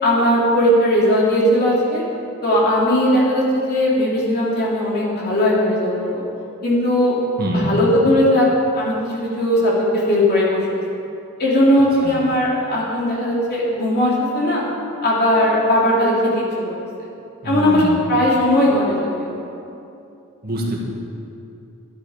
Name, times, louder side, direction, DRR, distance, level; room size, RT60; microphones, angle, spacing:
voice 1, 0.0-2.0 2.4-6.2 6.6-7.1 7.5-8.5 8.7-10.7 11.4-14.6 15.0-16.7 17.4-19.4, left 1 dB, 45° left, -5 dB, 3.0 m, -18 dB
voice 2, 7.4-7.8 12.0-12.2 17.4-18.0 20.4-20.8, right 1 dB, 45° right, -2 dB, 1.9 m, -24 dB
12.0 x 11.5 x 5.0 m, 2.7 s
head